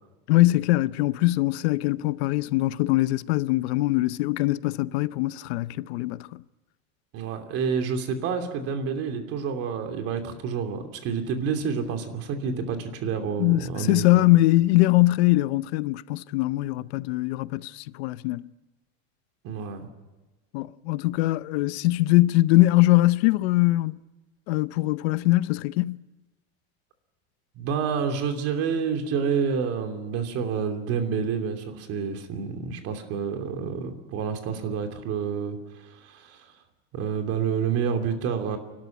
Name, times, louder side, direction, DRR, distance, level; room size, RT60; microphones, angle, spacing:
voice 1, 0.3-6.4 13.4-18.5 20.5-24.0 24.5-26.0, left 18 dB, 75° left, 0.7 m, -22 dB
voice 2, 7.1-14.3 19.4-19.9 27.6-36.5 36.9-38.6, right 6 dB, 45° right, 2.9 m, -29 dB
29.0 x 13.0 x 9.1 m
supercardioid pair, 150°, 33 cm